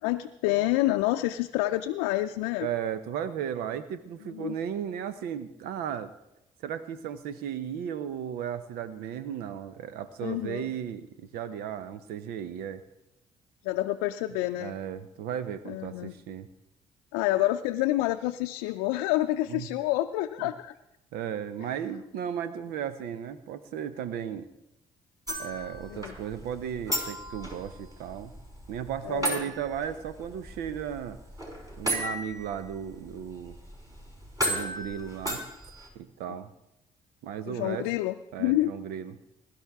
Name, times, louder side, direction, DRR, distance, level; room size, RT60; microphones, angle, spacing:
voice 1, 0.0-2.7 4.3-4.6 10.2-10.7 13.6-14.8 15.7-16.1 17.1-20.7 25.9-26.1 29.0-29.5 36.3-36.4 37.5-38.7, left 16 dB, 80° left, 5 dB, 0.5 m, -28 dB
voice 2, 2.6-6.1 6.6-12.8 14.6-16.5 19.5-19.7 21.1-24.5 25.4-28.3 28.7-31.2 31.8-33.6 34.4-35.4 35.9-36.5 37.2-37.9 38.3-39.2, right 9 dB, 75° right, 13 dB, 0.9 m, -35 dB
sound 1, 25.3-35.9, equal, 20° right, 5.7 m, -36 dB
21.5 x 12.0 x 3.6 m, 0.86 s
hypercardioid pair, 50°, 16 cm